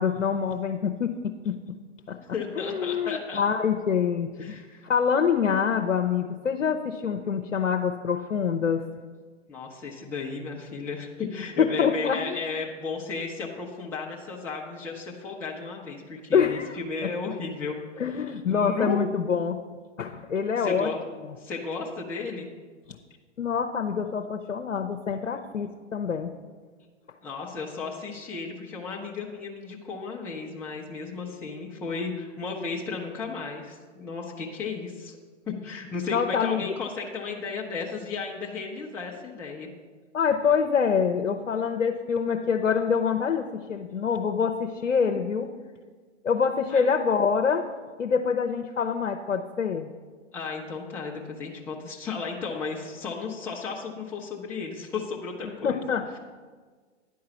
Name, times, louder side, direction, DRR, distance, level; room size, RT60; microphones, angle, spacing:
voice 1, 0.0-1.6 2.1-2.2 2.5-4.6 4.8-8.8 11.6-12.4 16.3-16.8 18.0-19.6 20.0-20.9 23.4-26.3 36.1-36.7 40.1-43.4 43.7-45.5 46.2-47.6 48.0-49.9 55.6-56.2, left 6 dB, 85° left, 3 dB, 0.6 m, -25 dB
voice 2, 2.2-3.4 4.4-4.9 9.5-17.8 18.5-19.0 20.6-21.0 21.4-22.5 27.2-35.2 35.5-39.7 46.7-46.8 50.3-55.8, left 4 dB, 5° left, -3 dB, 0.5 m, -34 dB
9.8 x 4.7 x 6.8 m, 1.5 s
figure-of-eight pair, 115°, 37 cm